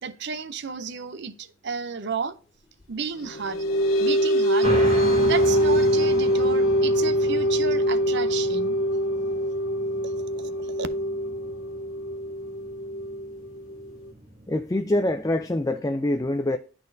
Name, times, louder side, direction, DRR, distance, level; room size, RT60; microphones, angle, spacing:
voice 1, 0.0-2.4 2.9-3.6 4.0-4.7 5.2-8.8 10.0-10.9, right 5 dB, 55° right, 0.6 m, -32 dB
sound 1, 3.1-14.1, equal, 75° left, 0.8 m, -23 dB
sound 2, 4.6-15.7, right 1 dB, 30° right, 1.7 m, -36 dB
voice 2, 14.5-16.6, left 1 dB, 15° left, 0.3 m, -25 dB
11.5 x 4.2 x 2.6 m
head